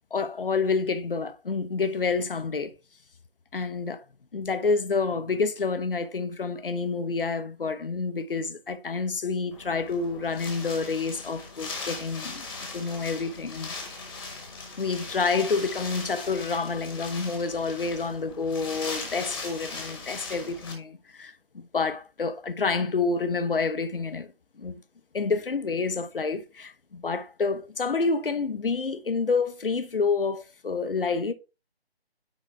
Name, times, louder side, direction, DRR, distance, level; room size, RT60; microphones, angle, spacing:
voice 1, 0.1-2.7 3.5-4.0 4.3-12.5 12.7-13.7 14.8-24.3 24.6-24.8 25.1-31.3, left 4 dB, 60° left, 0.8 m, -28 dB
Wind, 9.5-20.7, left 3 dB, 20° left, 1.4 m, -39 dB
9.3 x 4.0 x 3.3 m
figure-of-eight pair, 160°, 32 cm